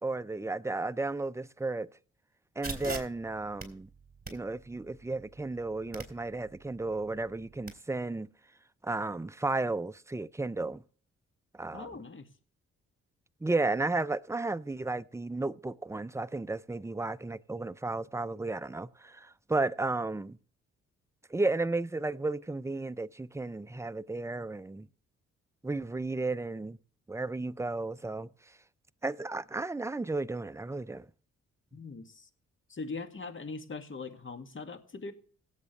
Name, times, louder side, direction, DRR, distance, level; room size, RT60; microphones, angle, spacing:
voice 1, 0.0-1.9 2.6-3.9 4.3-8.3 8.8-10.8 11.5-12.0 13.4-20.4 21.3-24.9 25.6-26.8 27.1-28.3 29.0-31.1, right 2 dB, 10° right, 0.6 m, -33 dB
sound 1, 2.6-7.7, right 3 dB, 30° right, 3.8 m, -44 dB
voice 2, 11.7-12.3 31.7-32.3 32.7-35.1, left 3 dB, 40° left, 2.0 m, -41 dB
17.0 x 8.2 x 3.3 m
supercardioid pair, 60°, 30 cm